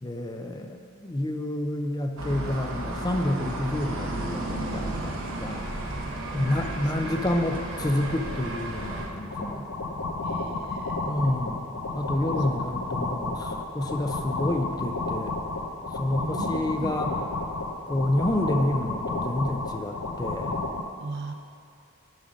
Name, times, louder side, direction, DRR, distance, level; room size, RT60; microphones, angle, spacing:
voice 1, 0.0-5.7 6.3-9.7 11.1-15.4 15.9-17.1 17.9-20.6, left 1 dB, 20° left, 4 dB, 0.4 m, -29 dB
sound 1, 2.2-9.1, right 1 dB, 70° right, 0.9 m, -33 dB
voice 2, 6.3-7.1 7.4-7.5 10.2-11.1 16.2-17.0 21.0-21.3, right 3 dB, 50° right, 4 dB, 0.5 m, -39 dB
sound 2, 9.3-20.8, left 2 dB, 75° left, 0.6 m, -32 dB
10.5 x 3.7 x 6.2 m, 2.4 s
head